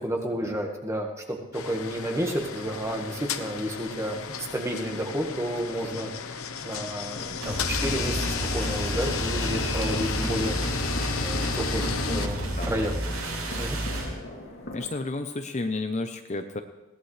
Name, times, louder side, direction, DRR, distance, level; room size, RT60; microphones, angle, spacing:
voice 1, 0.0-6.4 6.6-10.6 11.2-12.4 12.6-12.9 13.6-13.8, equal, 15° right, 2 dB, 1.6 m, -31 dB
sound 1, 1.5-12.3, left 6 dB, 80° left, 0.9 m, -33 dB
sound 2, 7.1-14.9, left 1 dB, 60° left, 2.5 m, -41 dB
sound 3, 7.4-14.1, right 1 dB, 80° right, 7.2 m, -30 dB
voice 2, 12.1-12.7 14.7-16.6, left 2 dB, 35° left, 6 dB, 0.6 m, -33 dB
21.0 x 17.0 x 3.3 m, 1.1 s
head